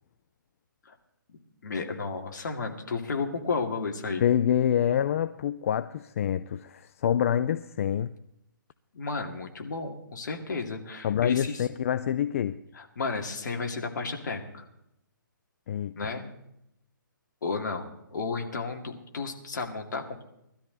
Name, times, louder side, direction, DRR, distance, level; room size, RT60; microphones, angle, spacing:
voice 1, 1.6-4.2 8.9-11.7 12.7-14.6 16.0-16.3 17.4-20.2, left 4 dB, 60° left, 2.4 m, -33 dB
voice 2, 4.2-8.1 11.0-12.6 15.7-15.9, left 9 dB, 40° left, 0.4 m, -26 dB
18.5 x 13.0 x 4.0 m
figure-of-eight pair, 140°, 11 cm